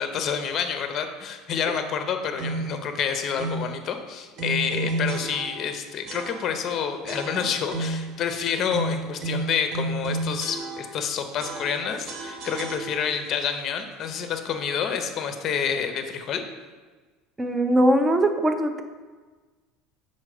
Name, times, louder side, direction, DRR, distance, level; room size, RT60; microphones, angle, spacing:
voice 1, 0.0-16.4, left 7 dB, 35° left, 7 dB, 0.6 m, -28 dB
sound 1, 2.4-2.8 3.4-3.7 4.4-5.7 6.1-6.7 7.1-8.1 8.7-11.1 11.4-13.3, right 2 dB, 45° right, 0.9 m, -32 dB
voice 2, 17.4-18.8, right 1 dB, 10° right, 6 dB, 0.5 m, -21 dB
6.4 x 4.1 x 4.8 m, 1.4 s
cardioid pair, 155°, 0 cm